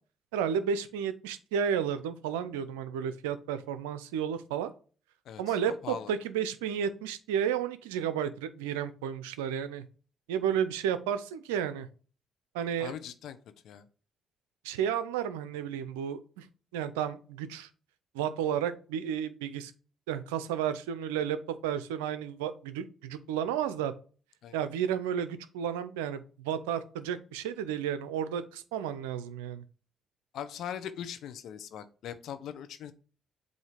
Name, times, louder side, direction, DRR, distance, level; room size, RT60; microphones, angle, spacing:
voice 1, 0.3-4.7 5.4-9.8 10.3-11.9 12.5-12.9 14.6-16.5 16.7-17.7 18.1-19.7 20.1-23.9 24.5-29.6, right 8 dB, 85° right, 13 dB, 0.5 m, -32 dB
voice 2, 5.3-6.1 12.8-13.4 13.6-13.8 24.4-24.5 30.3-32.9, left 9 dB, 70° left, 10 dB, 0.7 m, -40 dB
7.9 x 2.7 x 5.0 m, 0.38 s
hypercardioid pair, 45°, 0 cm